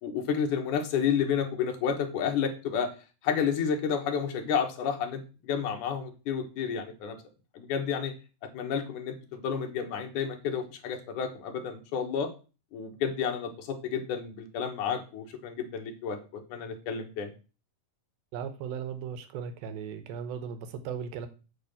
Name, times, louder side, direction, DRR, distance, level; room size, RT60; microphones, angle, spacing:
voice 1, 0.0-2.9 3.2-7.2 7.5-8.1 8.5-12.3 12.7-16.2 16.5-17.3, left 7 dB, 65° left, 4 dB, 2.7 m, -30 dB
voice 2, 18.3-21.3, right 7 dB, 85° right, 10 dB, 2.8 m, -37 dB
8.5 x 4.3 x 7.0 m, 0.33 s
omnidirectional pair, 4.1 m